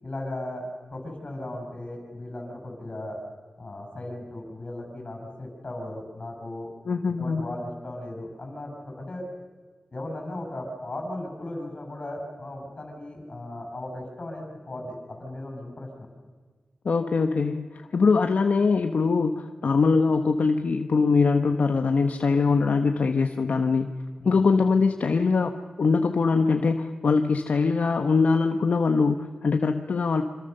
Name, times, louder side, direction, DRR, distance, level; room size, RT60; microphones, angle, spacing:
voice 1, 0.0-3.2 3.6-6.7 7.2-9.2 9.9-16.1 24.2-24.4, left 1 dB, 40° left, 3 dB, 6.9 m, -36 dB
voice 2, 6.9-7.5 16.8-23.9 24.2-25.5 25.8-30.2, left 4 dB, 70° left, 6 dB, 1.1 m, -22 dB
26.0 x 26.0 x 6.8 m, 1.4 s
wide cardioid pair, 100°, 3 cm